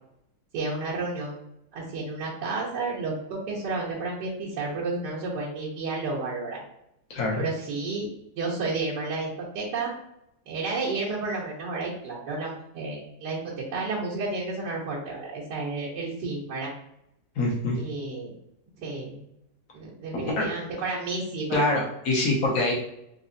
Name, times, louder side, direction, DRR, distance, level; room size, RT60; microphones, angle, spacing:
voice 1, 0.5-1.3 1.7-6.6 7.4-8.1 8.4-9.3 9.5-9.9 10.5-16.7 17.8-18.3 18.8-19.2 19.7-21.8, right 3 dB, 75° right, -8 dB, 1.6 m, -31 dB
voice 2, 7.1-7.5 17.3-17.8 20.1-20.4 21.5-22.7, left 2 dB, 55° left, -3 dB, 1.5 m, -25 dB
4.1 x 3.0 x 2.6 m, 0.81 s
omnidirectional pair, 1.9 m